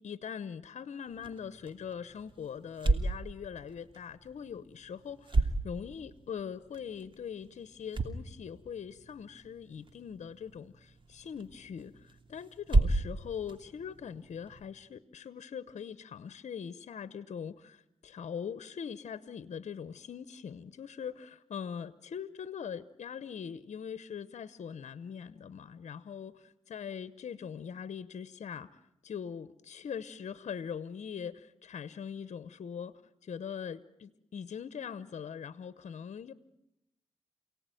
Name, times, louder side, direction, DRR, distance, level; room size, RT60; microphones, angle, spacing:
voice 1, 0.0-26.3 26.7-36.3, left 7 dB, 80° left, 15 dB, 0.9 m, -42 dB
sound 1, 1.1-14.7, right 2 dB, 45° right, 2.8 m, -35 dB
28.5 x 18.0 x 9.2 m, 0.86 s
cardioid pair, 60°, 12 cm